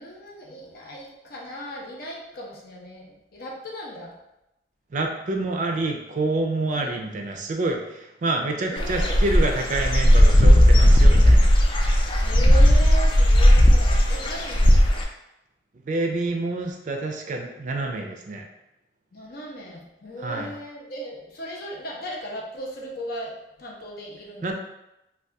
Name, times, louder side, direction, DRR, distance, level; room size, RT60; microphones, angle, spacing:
voice 1, 0.0-4.1 6.7-7.0 8.6-9.2 12.2-14.8 19.1-24.5, right 1 dB, 60° left, -2 dB, 0.7 m, -37 dB
voice 2, 4.9-11.5 15.9-18.4 20.2-20.5 24.4-24.5, right 2 dB, 45° right, 2 dB, 0.4 m, -27 dB
Dog / Bird, 8.8-15.0, equal, 30° left, 0.3 m, -16 dB
2.7 x 2.3 x 3.4 m, 0.90 s
head